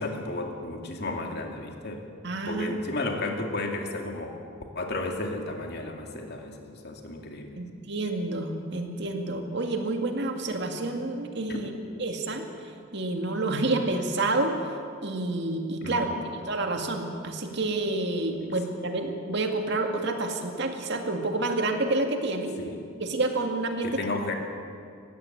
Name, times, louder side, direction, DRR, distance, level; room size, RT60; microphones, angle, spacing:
voice 1, 0.0-2.0 2.5-4.4 4.8-7.6 11.5-11.7 15.8-16.2 18.4-18.6 22.6-22.8 23.8-24.3, left 2 dB, 55° left, 2 dB, 2.4 m, -33 dB
voice 2, 2.2-2.8 7.6-11.7 12.0-12.4 12.9-14.5 15.0-16.1 16.5-22.6 23.0-24.0, right 2 dB, 60° right, 4 dB, 2.1 m, -29 dB
19.0 x 15.5 x 9.2 m, 2.4 s
head